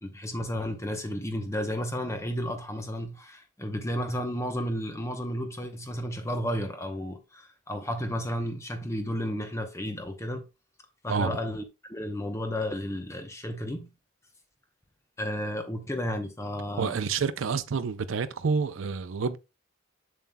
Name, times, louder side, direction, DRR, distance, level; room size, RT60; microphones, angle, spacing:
voice 1, 0.0-10.4 11.0-13.9 15.2-17.0, equal, 15° left, 0.8 m, -32 dB
voice 2, 16.8-19.4, right 5 dB, 85° right, 0.5 m, -28 dB
7.3 x 7.0 x 2.2 m
head